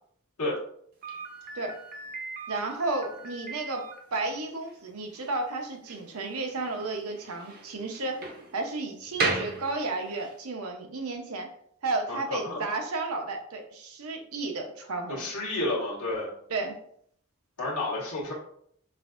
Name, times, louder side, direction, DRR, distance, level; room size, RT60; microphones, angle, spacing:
Slam, 1.0-10.4, right 3 dB, 45° right, 0.7 m, -37 dB
voice 1, 2.5-3.8 4.1-8.2 8.5-11.5 11.8-15.3 16.5-16.8, right 3 dB, 85° right, 3 dB, 0.8 m, -32 dB
voice 2, 12.1-12.6 15.1-16.3 17.6-18.3, left 2 dB, 85° left, -6 dB, 1.5 m, -31 dB
5.7 x 2.6 x 2.5 m, 0.67 s
head